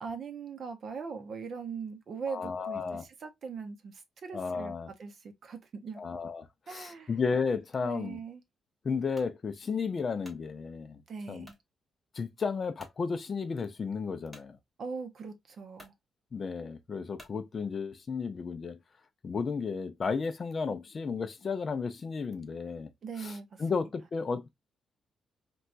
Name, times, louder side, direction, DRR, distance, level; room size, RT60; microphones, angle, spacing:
voice 1, 0.0-6.0 6.7-7.2 7.8-8.4 11.1-11.6 14.8-15.9 23.0-23.9, right 5 dB, 50° right, 0.6 m, -41 dB
voice 2, 2.3-3.0 4.3-4.9 6.0-8.2 8.8-11.0 11.3-11.5 12.1-14.6 16.3-18.8 19.2-22.9 23.2-24.5, left 5 dB, 35° left, 0.4 m, -33 dB
sound 1, 9.1-9.4 9.9-10.5 11.4-11.7 12.2-12.3 12.8-13.0 14.3-14.5 15.3-15.4 15.7-16.0 17.2-17.4, left 1 dB, 5° right, 0.8 m, -53 dB
4.2 x 2.2 x 2.4 m
wide cardioid pair, 165°, 0 cm